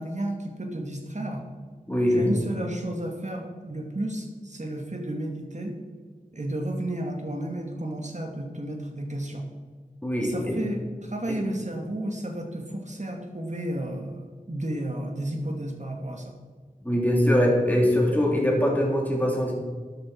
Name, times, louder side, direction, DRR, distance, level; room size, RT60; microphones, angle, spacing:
voice 1, 0.0-1.4 2.1-5.7 6.3-9.5 10.2-16.3, right 1 dB, 55° right, 3 dB, 2.2 m, -32 dB
voice 2, 1.9-2.3 10.0-10.6 16.8-19.5, equal, 10° left, -2 dB, 3.5 m, -22 dB
13.0 x 10.5 x 4.6 m, 1.5 s
wide cardioid pair, 55°, 15 cm